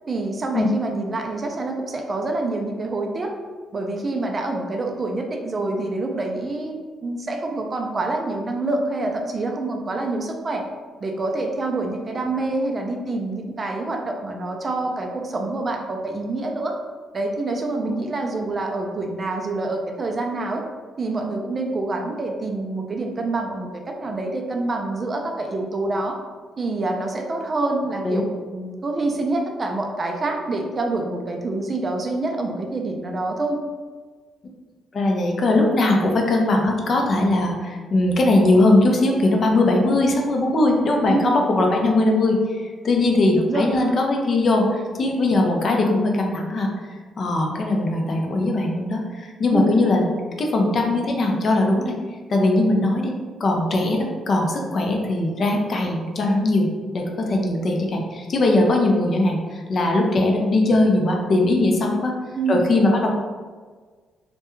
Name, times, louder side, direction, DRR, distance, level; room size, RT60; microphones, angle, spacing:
voice 1, 0.1-3.3 3.7-6.7 7.0-10.6 11.0-16.8 17.1-20.6 21.0-26.2 26.6-33.6 41.1-41.4 43.3-44.0 49.5-49.8 62.3-62.7, right 2 dB, 35° right, 2 dB, 0.3 m, -26 dB
voice 2, 34.9-46.7 47.2-50.1 50.4-52.0 52.3-53.1 53.4-56.7 56.9-62.1 62.5-63.1, left 2 dB, 50° left, 1 dB, 0.4 m, -20 dB
2.3 x 2.1 x 2.9 m, 1.5 s
cardioid pair, 90°, 0 cm